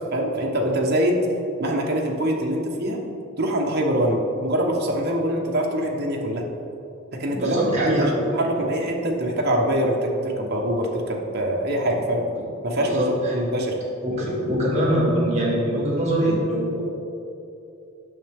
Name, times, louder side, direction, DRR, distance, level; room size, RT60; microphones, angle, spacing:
voice 1, 0.1-1.2 1.6-3.0 3.4-6.5 7.1-12.2 12.6-13.0 13.3-13.8, right 1 dB, 50° right, 0 dB, 1.0 m, -24 dB
voice 2, 7.3-8.2 12.8-13.4 14.0-16.8, equal, 35° right, -4 dB, 1.9 m, -23 dB
9.0 x 6.5 x 3.5 m, 2.7 s
head